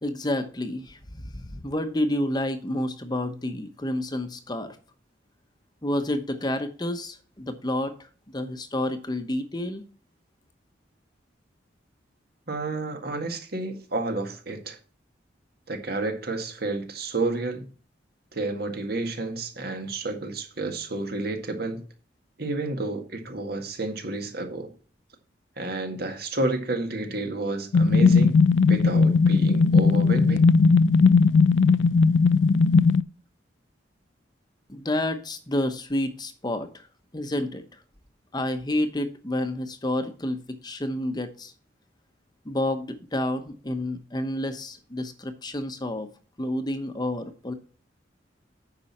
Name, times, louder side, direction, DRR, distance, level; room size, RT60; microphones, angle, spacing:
voice 1, 0.0-4.8 5.8-7.9 8.3-9.8 34.7-36.9 37.1-37.6 38.3-41.5 42.4-46.1 46.4-47.5, left 1 dB, 25° left, 1.0 m, -29 dB
voice 2, 12.5-14.8 15.7-17.7 18.3-21.8 22.4-24.7 25.6-28.4 28.7-30.5, right 2 dB, 55° right, 1.9 m, -30 dB
sound 1, 27.7-33.0, left 4 dB, 90° left, 0.4 m, -18 dB
9.5 x 6.1 x 4.3 m
head